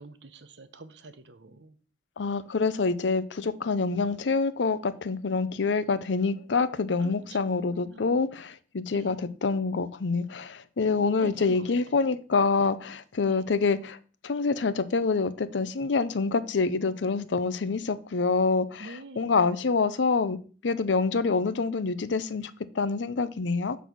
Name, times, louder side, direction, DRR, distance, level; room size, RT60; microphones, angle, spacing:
voice 1, 0.0-1.7 7.0-7.4 7.8-8.1 8.9-9.1 11.2-11.6 13.2-13.4 18.8-19.4, right 2 dB, 75° right, 0.9 m, -46 dB
voice 2, 2.2-14.0 14.2-20.4 20.6-23.8, left 4 dB, 85° left, 0.6 m, -26 dB
7.0 x 4.1 x 6.1 m
head